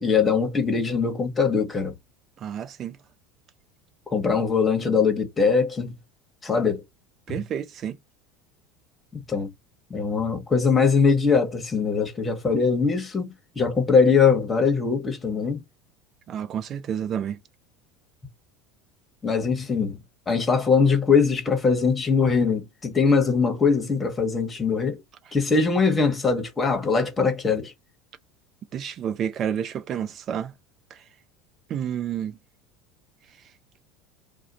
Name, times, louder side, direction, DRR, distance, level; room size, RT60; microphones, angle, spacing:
voice 1, 0.0-1.9 4.1-5.9 6.4-6.8 7.3-7.4 9.1-9.5 9.9-15.6 19.2-20.0 20.3-25.0 25.3-27.7, left 5 dB, 20° left, 1.1 m, -22 dB
voice 2, 2.4-3.0 6.5-6.6 7.3-8.0 16.3-17.4 28.7-30.5 30.9-31.0 31.7-32.4, right 9 dB, 40° right, 0.5 m, -30 dB
2.4 x 2.2 x 4.0 m
hypercardioid pair, 75°, 0 cm